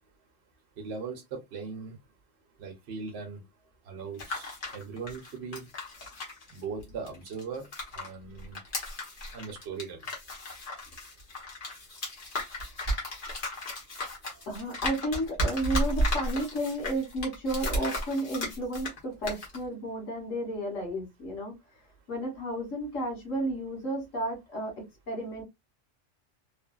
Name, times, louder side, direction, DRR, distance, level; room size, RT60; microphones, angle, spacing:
voice 1, 0.8-2.0 2.6-3.4 3.9-5.7 6.5-7.7 7.9-8.6 9.3-10.0, right 5 dB, 60° right, 1.0 m, -39 dB
sound 1, 4.0-8.1 8.4-19.0 19.2-19.6, equal, 45° left, 1.1 m, -34 dB
voice 2, 14.5-21.5 22.1-24.7 25.1-25.4, right 1 dB, 75° left, 1.6 m, -32 dB
3.2 x 2.1 x 2.3 m
omnidirectional pair, 1.3 m